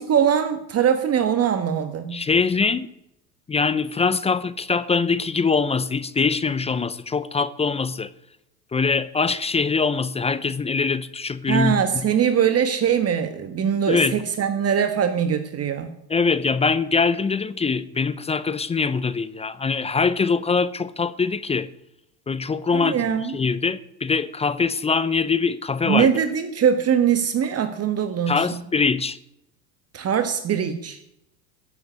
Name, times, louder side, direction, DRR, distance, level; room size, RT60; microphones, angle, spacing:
voice 1, 0.0-2.2 11.5-16.0 22.7-23.2 25.8-28.6 29.9-31.0, right 8 dB, 30° right, 1.5 m, -22 dB
voice 2, 2.1-2.9 3.5-8.1 8.7-11.8 13.9-14.2 16.1-21.7 22.3-26.1 28.3-29.2, left 4 dB, 15° left, 0.6 m, -23 dB
15.0 x 8.1 x 9.9 m
hypercardioid pair, 105°, 49 cm